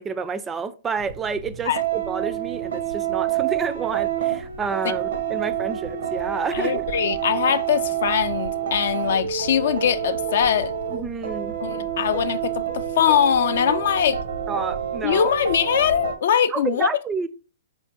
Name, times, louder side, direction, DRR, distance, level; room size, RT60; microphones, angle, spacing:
voice 1, 0.0-6.9 10.9-11.6 14.5-15.3 16.5-17.3, right 5 dB, 20° right, 0.3 m, -29 dB
sound 1, 1.0-16.2, right 10 dB, 80° right, 0.7 m, -28 dB
voice 2, 6.5-10.7 11.6-14.2 15.0-16.9, left 9 dB, 70° left, 0.3 m, -22 dB
4.3 x 3.4 x 2.8 m
hypercardioid pair, 125°, 0 cm